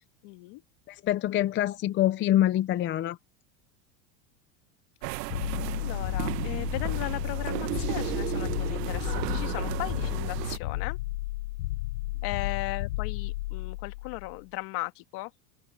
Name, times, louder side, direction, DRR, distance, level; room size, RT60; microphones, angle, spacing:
voice 1, 0.2-0.6 5.7-11.0 12.2-15.3, left 22 dB, 50° left, 1.8 m, -37 dB
voice 2, 0.9-3.2, left 13 dB, 25° left, 0.6 m, -25 dB
sound 1, 5.0-10.6, right 19 dB, 75° right, 1.4 m, -34 dB
sound 2, 5.3-14.4, left 18 dB, 90° left, 0.8 m, -33 dB
open air
supercardioid pair, 140°, 50 cm